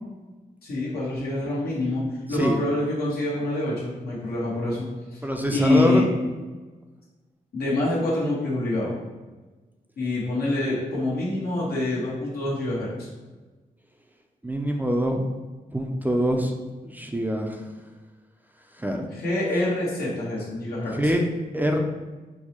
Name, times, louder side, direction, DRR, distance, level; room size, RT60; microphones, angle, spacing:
voice 1, 0.6-5.2 5.5-6.0 7.5-8.9 10.0-13.1 19.1-21.1, left 2 dB, 85° left, -7 dB, 1.2 m, -26 dB
voice 2, 5.2-6.0 14.4-15.2 15.7-16.5 16.8-17.6 18.8-19.1 20.9-21.2 21.5-21.8, equal, 10° right, 2 dB, 0.4 m, -24 dB
4.4 x 2.1 x 2.9 m, 1.3 s
cardioid pair, 70°, 16 cm